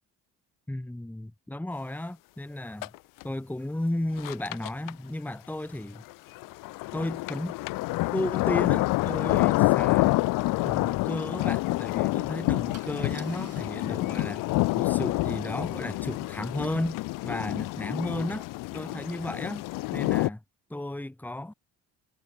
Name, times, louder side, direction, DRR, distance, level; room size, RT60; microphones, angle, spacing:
voice 1, 0.7-2.9 3.2-6.0 6.9-7.6 8.1-10.3 10.6-14.4 14.7-17.0 17.2-18.5 18.7-19.6 19.9-20.4 20.7-21.5, left 1 dB, 5° left, 1.7 m, -33 dB
sound 1, 2.8-3.0 3.2-3.3 4.2-4.9 6.1-20.3, left 21 dB, 70° left, 0.5 m, -28 dB
Car / Engine starting / Idling, 10.5-10.7 12.7-18.5, right 7 dB, 45° right, 6.8 m, -57 dB
cardioid pair, 90°, 34 cm